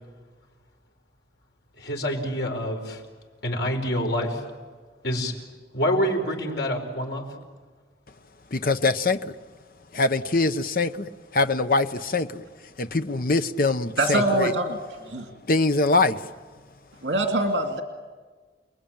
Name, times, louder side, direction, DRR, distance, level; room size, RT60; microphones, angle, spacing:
voice 1, 1.8-3.0 3.4-4.4 5.0-5.3 5.7-7.3 14.1-14.2, equal, 80° left, 1 dB, 5.1 m, -26 dB
voice 2, 8.5-9.3 9.9-12.4 12.8-14.5 15.5-16.2, left 3 dB, 55° left, 9 dB, 1.0 m, -23 dB
voice 3, 14.0-14.8 15.1-15.3 17.0-17.8, right 2 dB, 85° right, 3 dB, 2.4 m, -24 dB
29.5 x 21.0 x 9.0 m, 1.4 s
head